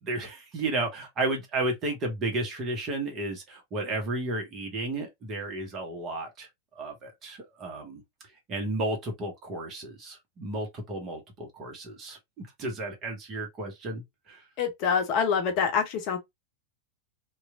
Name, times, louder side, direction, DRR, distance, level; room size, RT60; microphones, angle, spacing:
voice 1, 0.0-8.0 8.5-14.4, right 2 dB, 30° right, 1.1 m, -33 dB
voice 2, 14.6-16.2, left 6 dB, 40° left, 0.7 m, -26 dB
3.0 x 2.3 x 2.4 m
figure-of-eight pair, 90°, 0 cm